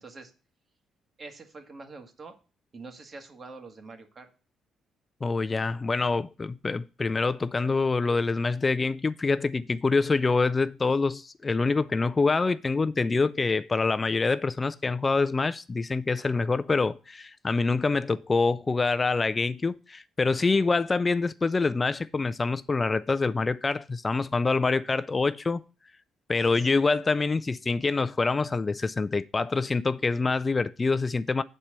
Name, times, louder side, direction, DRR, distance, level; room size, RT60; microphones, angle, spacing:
voice 1, 0.0-0.3 1.2-2.3 2.7-4.3 16.2-16.4 26.3-26.7, right 3 dB, 40° right, 1.6 m, -45 dB
voice 2, 5.2-25.6 26.3-31.4, left 4 dB, 30° left, 0.3 m, -26 dB
7.2 x 4.3 x 6.6 m
cardioid pair, 90°, 0 cm